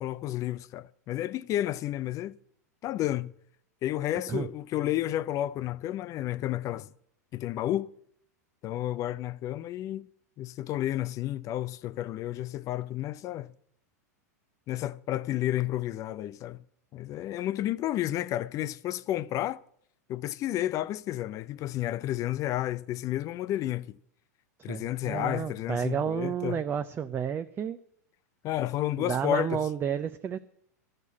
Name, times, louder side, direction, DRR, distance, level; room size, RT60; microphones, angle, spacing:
voice 1, 0.0-2.3 2.8-3.3 3.8-6.9 7.3-7.9 8.6-10.1 10.4-13.5 14.7-16.6 16.9-19.6 20.1-24.0 24.6-26.6 28.4-29.6, left 13 dB, 35° left, 0.5 m, -31 dB
voice 2, 24.7-27.8 29.0-30.4, right 8 dB, 25° right, 0.5 m, -31 dB
12.0 x 6.7 x 8.3 m
hypercardioid pair, 105°, 9 cm